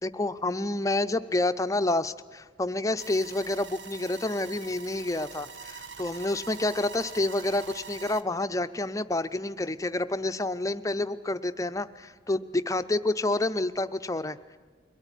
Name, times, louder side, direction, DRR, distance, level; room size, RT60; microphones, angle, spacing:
voice 1, 0.0-14.4, left 2 dB, 20° left, 11 dB, 0.7 m, -29 dB
sound 1, 3.0-8.2, right 6 dB, 90° right, 1.3 m, -44 dB
23.0 x 17.0 x 10.0 m, 1.5 s
head